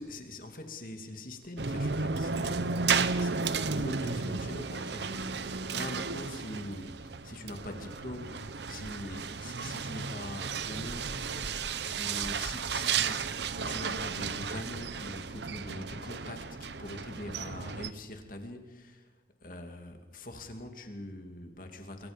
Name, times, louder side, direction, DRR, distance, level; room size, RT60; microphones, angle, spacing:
voice 1, 0.0-2.9 3.2-11.3 11.9-13.3 13.6-19.1 19.4-22.1, left 1 dB, 50° left, 4 dB, 2.5 m, -43 dB
sound 1, 1.6-17.9, right 5 dB, 75° right, 1.0 m, -33 dB
28.0 x 23.0 x 5.3 m, 1.2 s
head